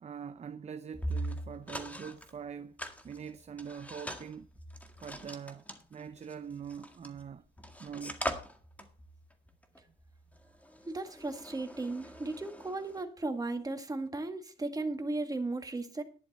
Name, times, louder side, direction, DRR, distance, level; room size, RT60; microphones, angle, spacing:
voice 1, 0.0-2.7 3.0-4.5 5.0-5.6 5.9-7.4 7.8-8.2, right 7 dB, 35° right, 0.7 m, -43 dB
sound 1, 0.9-2.3 2.8-7.3 7.6-13.0, equal, 5° left, 1.9 m, -41 dB
voice 2, 10.9-16.0, right 2 dB, 20° right, 2.0 m, -36 dB
11.5 x 10.5 x 4.3 m
cardioid pair, 90°, 20 cm